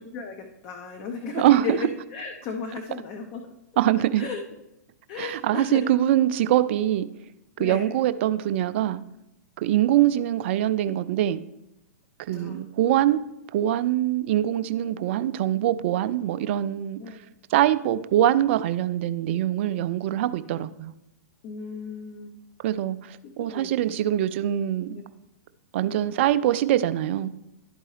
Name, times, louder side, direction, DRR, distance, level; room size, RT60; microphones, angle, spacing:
voice 1, 0.0-3.5 4.2-4.4 5.1-5.9 7.6-7.9 12.3-12.7 17.0-17.2 20.5-20.7 21.4-22.4 23.2-24.0 24.9-25.0, left 5 dB, 35° left, 4 dB, 0.7 m, -35 dB
voice 2, 1.3-1.8 3.8-4.2 5.2-7.1 7.6-9.0 9.6-11.4 12.3-13.2 13.5-17.0 17.5-20.9 22.6-24.9 25.7-27.3, right 12 dB, 45° right, 13 dB, 0.4 m, -23 dB
12.0 x 4.5 x 3.2 m, 0.88 s
figure-of-eight pair, 110°, 9 cm